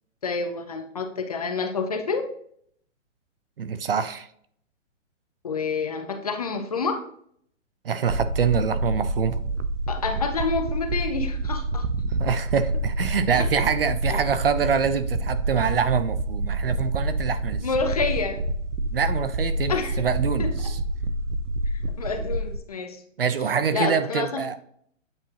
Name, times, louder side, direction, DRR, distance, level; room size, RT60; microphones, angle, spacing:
voice 1, 0.2-2.3 5.4-7.0 9.9-11.9 13.3-13.7 14.1-14.3 17.6-18.4 19.7-20.0 20.4-20.6 22.0-23.0 23.7-24.4, left 4 dB, 30° left, 6 dB, 0.6 m, -28 dB
voice 2, 3.6-4.3 7.8-9.4 12.2-17.7 18.9-20.8 23.2-24.5, right 6 dB, 50° right, 13 dB, 0.5 m, -25 dB
sound 1, 8.1-22.6, right 2 dB, 70° right, 0.9 m, -28 dB
8.8 x 4.4 x 2.9 m, 0.65 s
hypercardioid pair, 165°, 38 cm